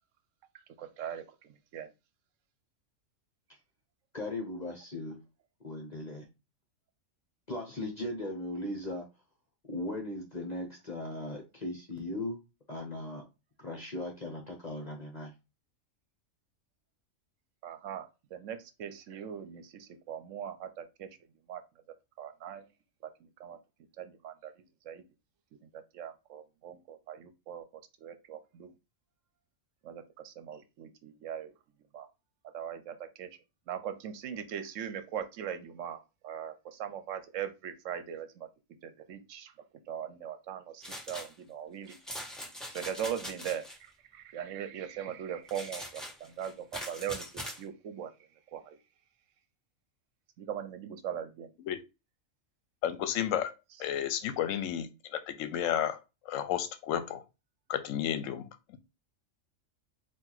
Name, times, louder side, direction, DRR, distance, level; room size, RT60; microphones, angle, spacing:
voice 1, 0.8-1.2 1.7-1.9 17.6-21.1 21.5-21.6 22.2-22.7 23.0-23.1 23.4-23.6 24.0-24.5 24.8-25.0 25.7-27.6 28.0-28.7 29.8-31.5 31.9-32.1 32.5-33.3 33.7-38.5 38.8-39.5 39.9-42.0 42.7-48.1 48.5-48.8 50.4-51.5, right 9 dB, 70° right, 10 dB, 1.0 m, -40 dB
voice 2, 4.1-5.2 5.6-6.2 7.5-9.1 9.7-12.4 12.7-13.2 13.6-15.3, left 1 dB, 35° left, 1 dB, 0.9 m, -38 dB
sound 1, 40.8-41.3 41.9-43.8 45.5-47.6, equal, ahead, 1.4 m, -42 dB
voice 3, 52.8-53.5 53.8-56.0 56.3-57.2 57.7-58.4, left 10 dB, 75° left, 11 dB, 1.0 m, -32 dB
4.5 x 2.5 x 3.9 m, 0.26 s
omnidirectional pair, 1.4 m